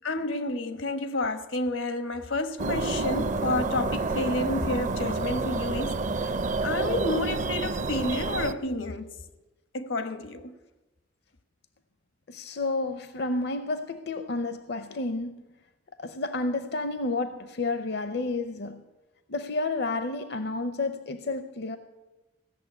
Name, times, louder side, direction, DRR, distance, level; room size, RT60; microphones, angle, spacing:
voice 1, 0.0-6.3 6.6-9.1 9.7-10.5, left 2 dB, 85° left, 1.2 m, -30 dB
sound 1, 2.6-8.5, right 3 dB, 40° right, 0.5 m, -29 dB
voice 2, 12.3-15.4 16.0-18.8 19.3-21.8, left 2 dB, 60° left, 0.6 m, -30 dB
16.5 x 6.9 x 9.4 m
head